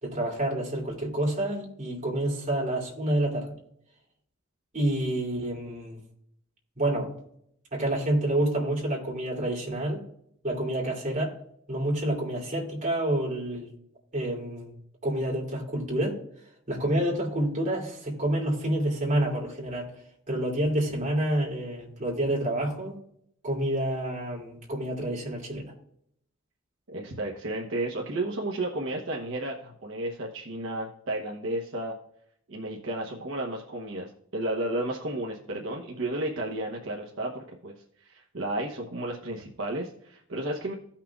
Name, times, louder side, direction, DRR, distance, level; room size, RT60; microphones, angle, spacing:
voice 1, 0.0-3.5 4.7-6.0 6.8-7.1 7.7-10.0 10.4-11.3 11.7-13.7 14.1-14.7 15.0-16.2 16.7-19.9 20.3-23.0 23.4-25.7, right 1 dB, 40° right, -2 dB, 2.7 m, -28 dB
voice 2, 26.9-31.9 32.5-40.7, right 1 dB, 65° right, -1 dB, 1.0 m, -33 dB
16.0 x 5.8 x 2.4 m, 0.71 s
head